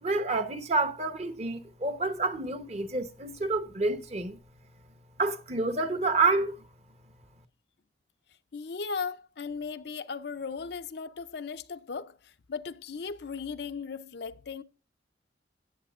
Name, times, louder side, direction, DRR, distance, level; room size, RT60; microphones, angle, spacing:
voice 1, 0.0-4.4 5.2-6.7, right 3 dB, 35° right, 0.9 m, -28 dB
voice 2, 8.5-14.6, left 5 dB, 65° left, 0.5 m, -37 dB
17.0 x 7.1 x 2.4 m
head